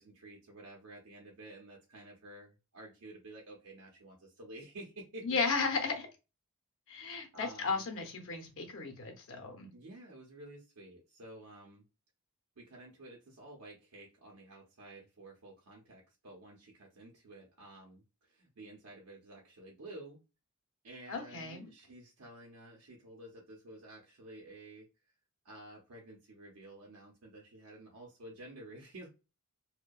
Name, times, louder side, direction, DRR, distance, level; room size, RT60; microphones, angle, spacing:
voice 1, 0.0-5.2 7.3-7.8 9.7-11.8 12.6-20.2 20.8-24.9 25.4-29.1, right 1 dB, 85° right, 0.7 m, -51 dB
voice 2, 5.2-6.1 6.9-9.7 21.1-21.7, left 4 dB, 60° left, 0.6 m, -35 dB
2.6 x 2.1 x 2.2 m
head